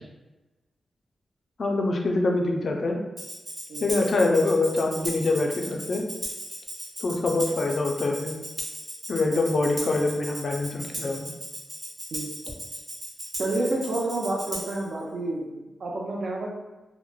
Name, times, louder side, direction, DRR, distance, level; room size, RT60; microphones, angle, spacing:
voice 1, 1.6-3.0 3.8-6.1 7.0-8.3 9.1-11.3, left 2 dB, 55° left, 2 dB, 0.4 m, -24 dB
Tambourine, 3.2-14.9, right 1 dB, 30° right, 0.7 m, -37 dB
voice 2, 13.4-16.5, right 2 dB, 65° right, -2 dB, 0.5 m, -29 dB
2.9 x 2.1 x 2.2 m, 1.1 s
wide cardioid pair, 100°, 0 cm